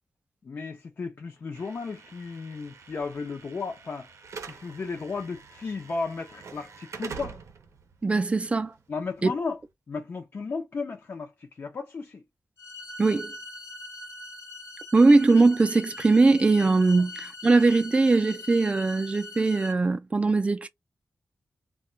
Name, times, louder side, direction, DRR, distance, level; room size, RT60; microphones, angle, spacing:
voice 1, 0.4-4.1 4.5-7.4 8.9-9.6 9.9-12.2, left 4 dB, 50° left, 0.5 m, -34 dB
Slam / Alarm, 1.5-9.6, right 5 dB, 80° right, 0.5 m, -45 dB
voice 2, 8.0-8.7 9.2-9.3 13.0-13.3 14.9-20.7, right 3 dB, 25° right, 0.4 m, -21 dB
sound 1, 12.6-19.7, left 2 dB, 70° left, 1.1 m, -41 dB
2.2 x 2.2 x 3.7 m
wide cardioid pair, 140°, 5 cm